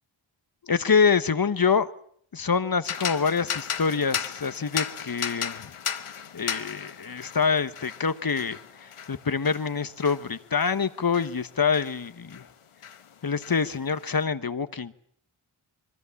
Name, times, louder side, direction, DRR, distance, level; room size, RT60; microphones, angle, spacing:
voice 1, 0.7-1.9 2.3-5.7 6.3-12.4 13.2-14.9, left 5 dB, 45° left, 13 dB, 1.2 m, -26 dB
sound 1, 2.8-12.5 12.8-14.1, left 8 dB, 90° left, 1.2 m, -36 dB
25.0 x 22.0 x 7.2 m, 0.64 s
cardioid pair, 50°, 49 cm